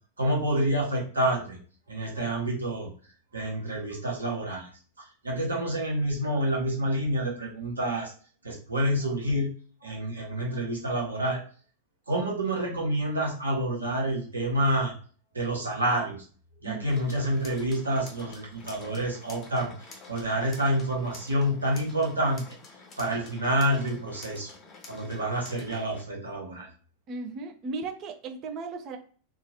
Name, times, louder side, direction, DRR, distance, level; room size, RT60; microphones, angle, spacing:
voice 1, 0.2-1.6 1.9-2.9 3.3-4.7 5.2-8.1 8.4-9.5 9.8-11.4 12.1-14.9 15.3-16.2 16.6-22.4 23.0-24.5 24.9-26.7, right 1 dB, 75° right, -2 dB, 1.1 m, -28 dB
voice 2, 16.6-16.9 27.1-29.0, right 3 dB, 35° right, 5 dB, 0.5 m, -36 dB
sound 1, 16.9-26.0, left 3 dB, 30° left, 0.7 m, -49 dB
2.8 x 2.3 x 2.8 m, 0.41 s
figure-of-eight pair, 90°, 0 cm